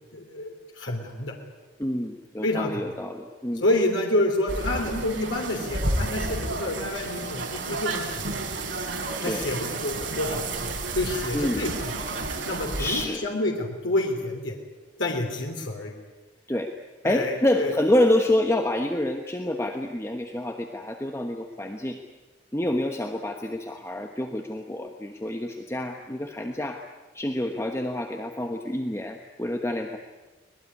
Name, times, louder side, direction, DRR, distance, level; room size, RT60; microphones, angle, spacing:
voice 1, 0.1-1.3 2.4-2.8 3.6-8.4 9.2-14.6 15.0-16.0 17.0-17.7, left 1 dB, 85° left, 1 dB, 3.4 m, -28 dB
voice 2, 1.8-3.6 9.2-9.5 11.3-11.7 12.8-13.2 16.5-16.7 17.0-22.0 22.5-26.8 27.1-30.0, left 1 dB, 15° left, 4 dB, 1.2 m, -27 dB
sound 1, 4.5-13.1, right 2 dB, 80° right, 4.5 m, -31 dB
24.5 x 19.5 x 9.6 m, 1.2 s
head